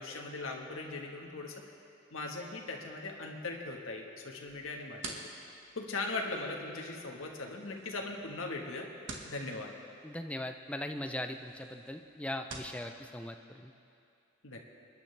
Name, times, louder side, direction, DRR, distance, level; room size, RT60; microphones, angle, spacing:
voice 1, 0.0-1.5 2.1-5.3 5.7-8.9 9.2-9.7 14.4-14.6, left 3 dB, 90° left, 1 dB, 1.4 m, -39 dB
sound 1, 4.5-12.8, right 3 dB, 70° right, 1.5 m, -50 dB
voice 2, 10.0-13.7, left 1 dB, 5° left, 6 dB, 0.5 m, -39 dB
26.5 x 10.5 x 3.3 m, 2.7 s
head